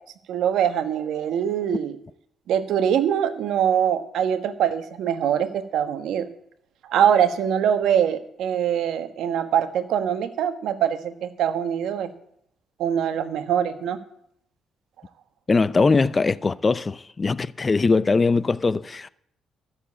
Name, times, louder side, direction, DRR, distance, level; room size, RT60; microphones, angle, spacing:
voice 1, 0.3-2.0 2.5-6.3 6.9-12.1 12.8-14.0, right 9 dB, 80° right, 1.3 m, -23 dB
voice 2, 15.5-19.1, left 4 dB, 30° left, 0.5 m, -21 dB
13.5 x 7.0 x 8.4 m
cardioid pair, 90°, 0 cm